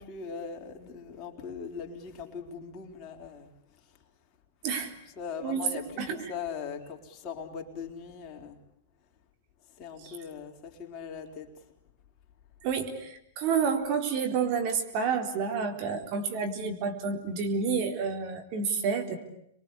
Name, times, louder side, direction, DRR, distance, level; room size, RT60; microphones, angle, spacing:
voice 1, 0.0-3.8 4.8-4.9 5.2-8.6 9.8-11.5, left 6 dB, 35° left, 1 dB, 4.2 m, -40 dB
voice 2, 5.4-6.3 10.0-10.2 12.6-19.2, right 5 dB, 45° right, 5 dB, 4.0 m, -30 dB
28.0 x 23.5 x 8.4 m, 0.75 s
hypercardioid pair, 115°, 0 cm